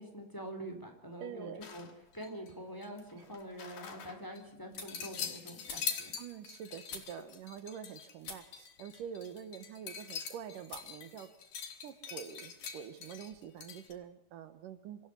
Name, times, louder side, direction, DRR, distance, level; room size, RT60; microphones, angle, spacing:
voice 1, 0.0-1.9 2.1-6.1, right 1 dB, 5° left, 4 dB, 4.0 m, -45 dB
voice 2, 1.2-1.6 3.2-3.3 6.2-11.3 11.8-15.1, right 8 dB, 75° right, 11 dB, 2.9 m, -46 dB
sound 1, 1.6-2.5 2.8-4.4 4.9-13.9, left 7 dB, 85° left, 4.5 m, -44 dB
sound 2, 2.0-2.5 2.9-7.9 8.2-10.2 10.6-10.9 11.3-12.0 12.5-12.7 13.0-14.1, left 5 dB, 70° left, 5.3 m, -52 dB
26.5 x 15.0 x 8.3 m, 0.79 s
omnidirectional pair, 3.9 m